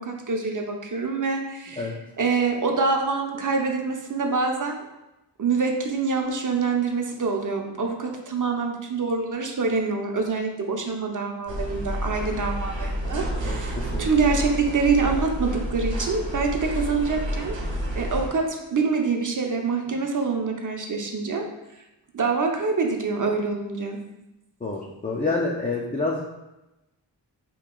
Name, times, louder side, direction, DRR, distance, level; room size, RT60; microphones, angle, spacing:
voice 1, 0.0-1.9 2.2-4.8 5.4-17.5 18.0-21.4 22.1-24.0, right 4 dB, 45° right, 2 dB, 0.7 m, -25 dB
sound 1, 11.5-18.3, equal, 85° right, 0.8 m, -29 dB
voice 2, 13.4-14.0 24.6-26.2, left 3 dB, 20° left, -3 dB, 0.4 m, -28 dB
3.0 x 2.8 x 3.7 m, 0.96 s
cardioid pair, 45°, 45 cm